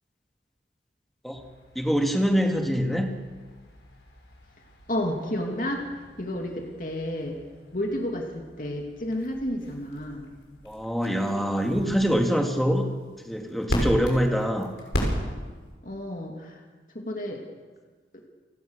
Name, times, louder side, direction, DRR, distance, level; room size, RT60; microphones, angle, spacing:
sound 1, 1.3-15.7, equal, 85° left, 6.3 m, -37 dB
voice 1, 1.8-3.1 10.6-12.8 13.2-14.7, equal, ahead, 3 dB, 2.1 m, -24 dB
voice 2, 4.9-5.8 6.2-7.4 7.7-10.3 15.8-16.6 16.9-17.4, left 1 dB, 50° left, 1 dB, 2.7 m, -31 dB
29.0 x 17.5 x 6.6 m, 1.4 s
head